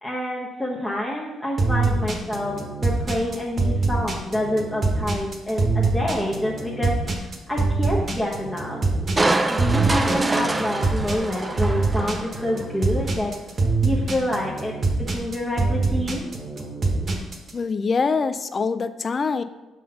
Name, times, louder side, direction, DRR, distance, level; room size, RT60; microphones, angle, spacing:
voice 1, 0.0-7.2 7.5-8.8 9.5-13.3 13.8-14.7 15.0-16.2, left 1 dB, 5° left, -5 dB, 0.9 m, -27 dB
sound 1, 1.6-17.5, right 3 dB, 40° right, 1.2 m, -24 dB
Crushing, 9.2-12.5 13.0-13.1, right 2 dB, 20° right, 0.5 m, -25 dB
voice 2, 17.5-19.4, left 4 dB, 40° left, 12 dB, 0.4 m, -24 dB
5.3 x 3.9 x 5.4 m, 1.1 s
cardioid pair, 90°, 0 cm